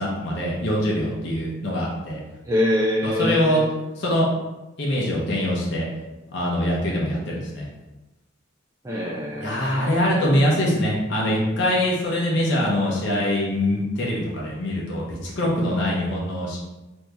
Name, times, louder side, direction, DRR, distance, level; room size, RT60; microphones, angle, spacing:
voice 1, 0.0-2.2 3.0-3.6 4.0-4.3 4.8-5.9 6.3-7.7 9.4-16.6, left 1 dB, 55° left, -4 dB, 0.7 m, -23 dB
voice 2, 2.5-3.7 8.8-10.2, left 1 dB, 15° right, -5 dB, 0.3 m, -25 dB
2.9 x 2.7 x 3.4 m, 1.0 s
head